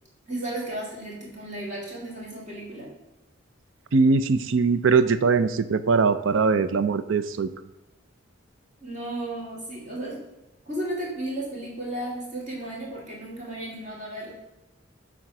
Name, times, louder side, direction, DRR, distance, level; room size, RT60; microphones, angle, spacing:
voice 1, 0.3-2.9 8.8-10.2 10.7-14.3, right 1 dB, 35° right, -4 dB, 2.6 m, -34 dB
voice 2, 3.9-7.5, right 4 dB, 70° right, 12 dB, 0.4 m, -21 dB
8.8 x 3.6 x 5.9 m, 0.98 s
head